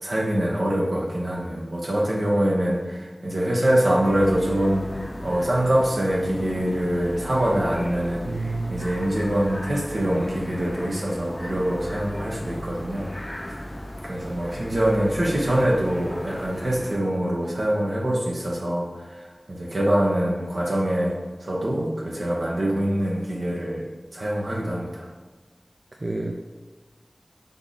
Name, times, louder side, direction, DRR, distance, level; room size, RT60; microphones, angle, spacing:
voice 1, 0.0-4.9 5.2-8.3 8.7-13.5 14.0-23.9 24.1-25.1, right 1 dB, 75° right, -3 dB, 1.0 m, -24 dB
sound 1, 4.0-17.0, left 1 dB, 25° left, 0.5 m, -36 dB
voice 2, 8.2-9.0 26.0-26.3, right 2 dB, 55° right, 1 dB, 0.4 m, -29 dB
3.5 x 3.5 x 4.0 m, 1.3 s
wide cardioid pair, 40°, 0 cm